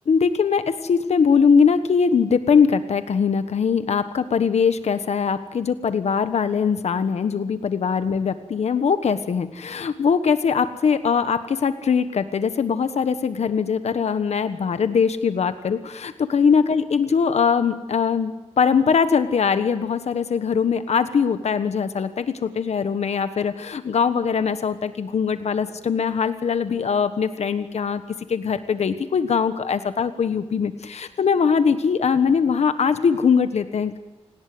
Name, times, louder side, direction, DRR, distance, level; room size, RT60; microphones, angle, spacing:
voice 1, 0.1-28.0 28.3-34.0, left 6 dB, 80° left, 11 dB, 1.3 m, -21 dB
28.5 x 19.5 x 7.8 m, 1.1 s
wide cardioid pair, 155°, 11 cm